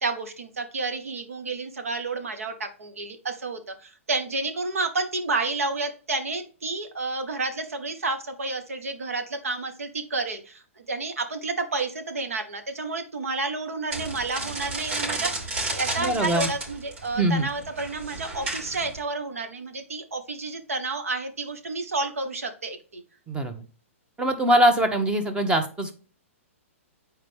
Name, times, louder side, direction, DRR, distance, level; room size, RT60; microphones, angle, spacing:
voice 1, 0.0-23.0, right 3 dB, 85° right, 7 dB, 1.3 m, -30 dB
sound 1, 13.9-19.0, right 2 dB, 65° right, 3.3 m, -32 dB
voice 2, 16.0-16.5 17.2-17.5 23.3-23.6 24.2-25.9, right 1 dB, 10° right, 8 dB, 1.1 m, -22 dB
7.7 x 4.5 x 3.5 m, 0.38 s
hypercardioid pair, 130°, 8 cm